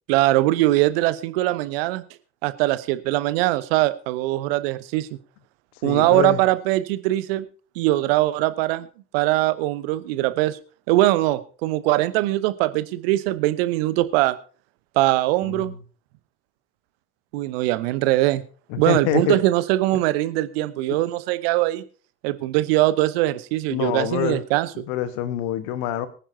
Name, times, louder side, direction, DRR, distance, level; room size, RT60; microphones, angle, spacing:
voice 1, 0.1-2.0 2.4-5.1 5.8-7.4 7.8-8.9 9.1-10.6 10.9-14.4 15.0-15.7 17.3-18.4 18.8-21.8 22.2-24.8, right 17 dB, 65° right, 15 dB, 0.9 m, -21 dB
voice 2, 5.8-6.4 15.4-15.7 18.7-19.4 19.9-20.0 23.7-24.4 24.9-26.1, left 12 dB, 60° left, 12 dB, 1.3 m, -26 dB
23.5 x 10.0 x 2.7 m, 0.39 s
figure-of-eight pair, 55°, 32 cm